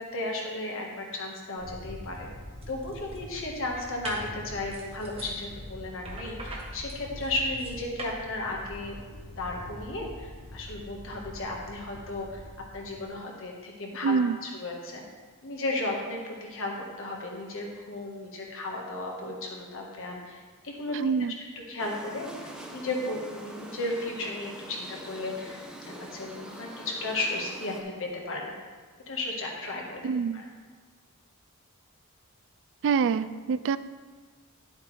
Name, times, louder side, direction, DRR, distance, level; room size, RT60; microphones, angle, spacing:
voice 1, 0.1-2.3 2.7-9.0 9.4-12.4 12.7-15.0 15.4-16.7 17.0-21.0 21.7-25.6 25.8-28.5 29.1-30.0 30.3-30.4, left 2 dB, 65° left, 0 dB, 1.6 m, -34 dB
sound 1, 1.6-13.0, equal, 90° left, 3.3 m, -44 dB
sound 2, 2.1-2.2 2.6-3.2 3.8-4.3 4.7-5.3 6.0-8.2, right 3 dB, 25° right, 1.3 m, -42 dB
voice 2, 14.0-14.4 21.0-21.3 30.0-30.4 32.8-33.8, right 5 dB, 60° right, 14 dB, 0.3 m, -25 dB
sound 3, 21.8-27.8, right 1 dB, 5° right, 1.0 m, -44 dB
11.0 x 8.2 x 3.4 m, 1.4 s
head